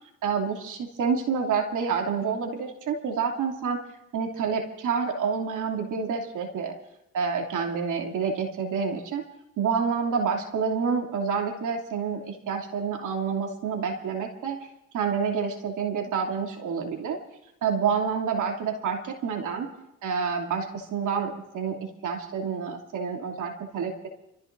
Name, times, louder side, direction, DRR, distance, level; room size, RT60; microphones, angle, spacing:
voice 1, 0.2-3.8 4.1-6.8 7.1-9.2 9.6-14.7 14.9-17.2 17.6-19.7 20.0-24.1, right 6 dB, 80° right, 1 dB, 2.9 m, -28 dB
29.5 x 15.5 x 2.7 m, 0.88 s
cardioid pair, 90°, 30 cm